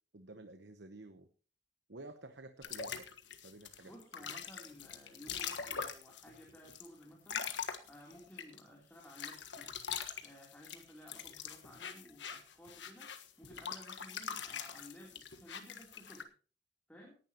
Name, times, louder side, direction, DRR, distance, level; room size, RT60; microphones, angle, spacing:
voice 1, 0.1-1.3 1.9-3.1 3.4-4.3, right 2 dB, 65° right, 9 dB, 1.0 m, -51 dB
sound 1, 2.6-8.6 9.0-16.2, left 7 dB, 70° left, 1.5 m, -43 dB
voice 2, 3.8-7.5 7.8-9.7 10.2-13.1 13.4-16.3 16.9-17.2, equal, 10° left, -2 dB, 3.3 m, -56 dB
18.5 x 11.0 x 3.0 m, 0.39 s
head